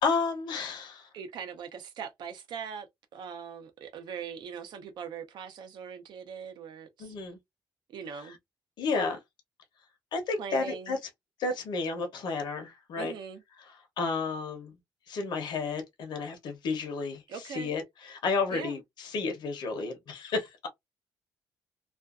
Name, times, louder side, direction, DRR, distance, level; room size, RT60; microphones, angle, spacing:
voice 1, 0.0-1.1 7.0-7.4 8.8-9.2 10.1-11.0 11.4-13.1 14.0-14.7 15.1-17.2 17.5-18.8 19.0-20.7, left 4 dB, 75° left, 0.8 m, -31 dB
voice 2, 1.1-2.9 3.1-7.2 7.9-8.4 10.4-11.0 13.0-13.4 17.3-17.7 18.5-18.8, right 7 dB, 75° right, 0.6 m, -41 dB
2.5 x 2.3 x 2.4 m
cardioid pair, 135°, 8 cm